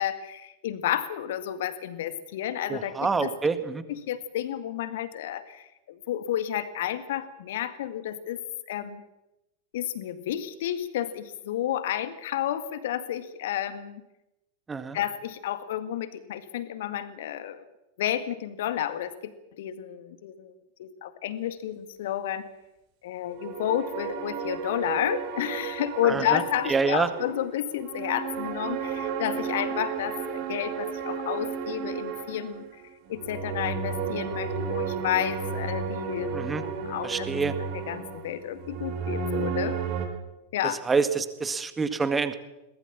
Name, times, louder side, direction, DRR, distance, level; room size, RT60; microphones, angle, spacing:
voice 1, 0.0-3.4 3.9-8.4 8.7-9.0 9.7-14.0 14.9-17.7 18.0-20.5 20.8-22.5 23.0-32.7 33.1-36.4 36.6-37.4 37.7-39.8 40.5-40.8, left 11 dB, 55° left, 12 dB, 1.8 m, -31 dB
voice 2, 2.7-3.8 14.7-15.0 26.0-26.4 26.7-27.1 36.3-36.6 37.0-37.5 40.9-42.3, right 4 dB, 15° right, 11 dB, 1.9 m, -26 dB
sound 1, 23.3-40.1, right 6 dB, 45° right, 4.2 m, -33 dB
22.0 x 19.0 x 7.3 m, 0.95 s
figure-of-eight pair, 90°, 0 cm